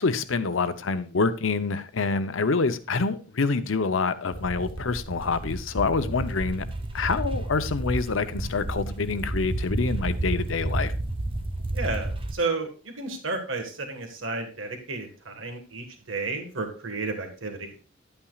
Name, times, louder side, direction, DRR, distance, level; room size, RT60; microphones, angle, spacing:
voice 1, 0.0-6.6 6.9-10.9, left 4 dB, 85° left, 0.7 m, -26 dB
sound 1, 4.3-12.3, right 1 dB, 30° right, 0.8 m, -31 dB
voice 2, 11.7-17.8, right 3 dB, 85° right, 1.6 m, -32 dB
11.0 x 8.8 x 2.4 m
head